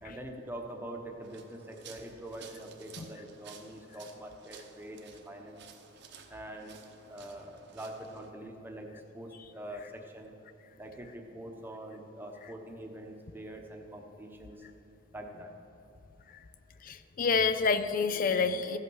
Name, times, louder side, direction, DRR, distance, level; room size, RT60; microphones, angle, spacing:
voice 1, 0.0-5.6 6.3-6.8 7.1-10.3 10.8-14.6 15.1-15.5, right 1 dB, 10° right, 2 dB, 1.0 m, -44 dB
sound 1, 1.2-8.3, right 6 dB, 60° right, 0.9 m, -54 dB
voice 2, 16.8-18.8, left 5 dB, 45° left, 11 dB, 0.5 m, -28 dB
14.5 x 5.7 x 6.3 m, 2.7 s
head